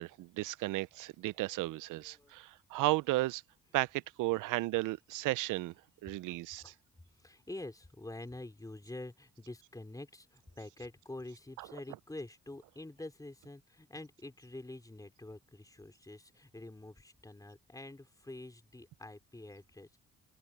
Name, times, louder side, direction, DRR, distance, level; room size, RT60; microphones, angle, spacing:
voice 1, 0.0-3.4 3.7-5.7 6.0-6.6, right 19 dB, 90° right, 0.5 m, -34 dB
voice 2, 1.5-2.3 6.3-6.8 7.1-20.0, left 2 dB, 10° left, 3.7 m, -47 dB
open air
cardioid pair, 90°, 30 cm